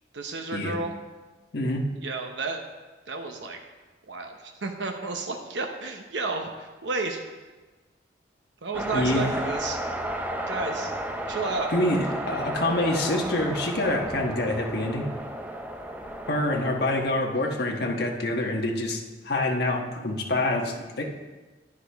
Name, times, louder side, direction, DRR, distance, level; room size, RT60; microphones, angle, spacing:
voice 1, 0.1-1.0 2.0-2.6 3.1-3.6 4.1-7.2 8.6-9.8 10.5-10.9 11.3-11.7, right 3 dB, 70° right, 4 dB, 0.9 m, -32 dB
voice 2, 1.5-1.8 8.9-9.3 11.7-15.0 16.3-21.0, left 1 dB, 60° left, 0 dB, 1.3 m, -26 dB
sound 1, 8.7-17.1, right 1 dB, 10° right, 0.6 m, -33 dB
10.0 x 10.0 x 3.5 m, 1.2 s
head